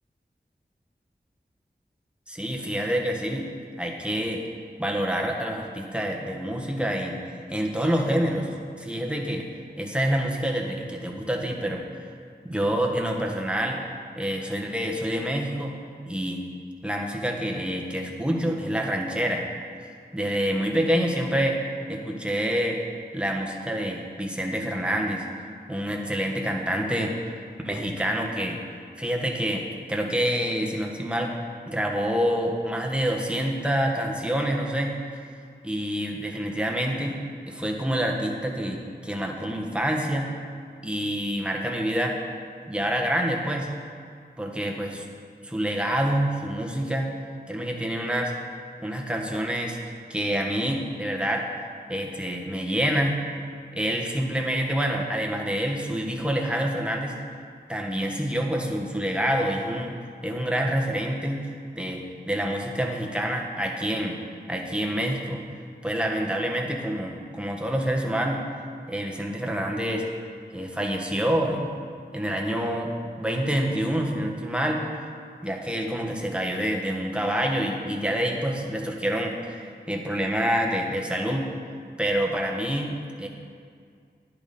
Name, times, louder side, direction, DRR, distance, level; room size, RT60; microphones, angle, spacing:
voice 1, 2.3-3.5 3.8-4.4 4.8-7.2 7.5-9.5 9.8-11.8 12.4-13.8 14.1-15.8 16.0-16.4 16.8-19.4 20.1-21.6 21.9-22.8 23.1-25.3 25.7-28.6 29.0-29.6 29.9-31.3 31.7-35.2 35.6-37.2 37.5-40.3 40.8-42.2 42.7-43.7 44.4-45.0 45.4-47.1 47.5-48.3 48.8-49.8 50.1-51.5 51.9-53.2 53.7-57.2 57.7-59.9 60.2-64.2 64.5-65.4 65.8-68.4 68.9-70.1 70.5-71.7 72.1-74.9 75.4-81.5 82.0-83.3, equal, 5° right, 0 dB, 1.4 m, -27 dB
10.5 x 10.0 x 4.3 m, 2.2 s
wide cardioid pair, 45°, 18 cm